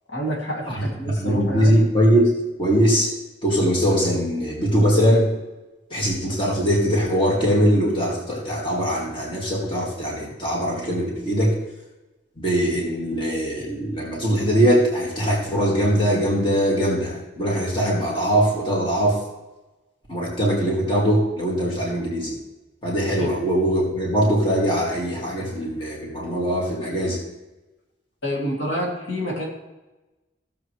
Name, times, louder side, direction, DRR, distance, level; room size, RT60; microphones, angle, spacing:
voice 1, 0.1-1.8 23.2-23.3 28.2-29.5, equal, 80° left, -3 dB, 2.7 m, -28 dB
voice 2, 0.7-2.3 2.6-3.1 3.4-5.3 5.9-11.6 12.4-19.2 20.1-22.4 22.8-27.2, equal, 25° left, -3 dB, 2.3 m, -21 dB
16.5 x 7.2 x 3.3 m, 1.1 s
head